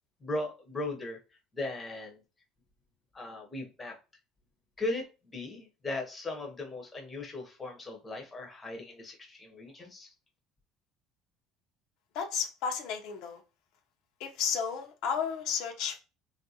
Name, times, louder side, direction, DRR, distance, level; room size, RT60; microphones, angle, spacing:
voice 1, 0.2-1.2 1.5-2.2 3.1-4.0 4.8-10.1, left 2 dB, 15° left, 1 dB, 0.7 m, -38 dB
voice 2, 12.1-13.4 14.2-16.0, left 7 dB, 70° left, 3 dB, 0.6 m, -33 dB
3.5 x 2.4 x 2.7 m, 0.31 s
cardioid pair, 145°, 0 cm